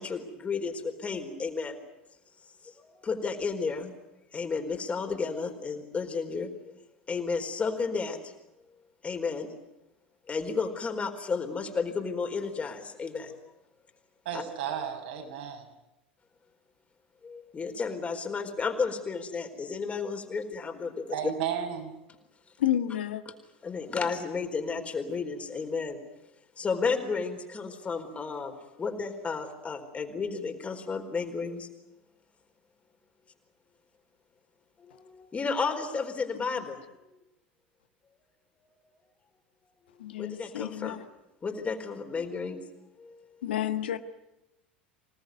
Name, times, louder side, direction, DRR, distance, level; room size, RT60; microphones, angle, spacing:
voice 1, 0.0-1.8 2.8-3.9 4.3-6.5 7.1-8.2 9.0-9.5 10.3-13.4 14.3-14.4 17.2-21.1 23.3-23.4 23.6-26.0 26.6-31.7 34.8-36.8 40.2-41.0 41.4-42.6 43.0-43.1, left 4 dB, 25° left, 4.4 m, -32 dB
voice 2, 14.3-15.6 21.1-21.9, right 8 dB, 65° right, 6.7 m, -33 dB
voice 3, 22.6-23.2 40.0-41.0 43.4-44.0, left 11 dB, 70° left, 1.4 m, -30 dB
27.0 x 18.5 x 9.5 m
figure-of-eight pair, 80°, 6 cm